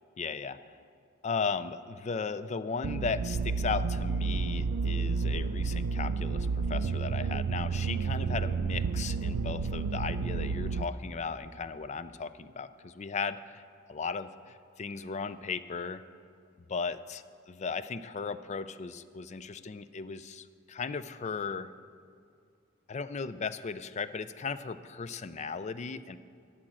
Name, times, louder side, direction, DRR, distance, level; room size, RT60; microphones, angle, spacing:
voice 1, 0.2-0.6 1.2-16.0 16.7-21.7 22.9-26.2, left 5 dB, 35° left, 14 dB, 0.4 m, -36 dB
sound 1, 2.8-10.8, right 4 dB, 90° right, 0.4 m, -31 dB
12.5 x 8.8 x 6.2 m, 2.3 s
head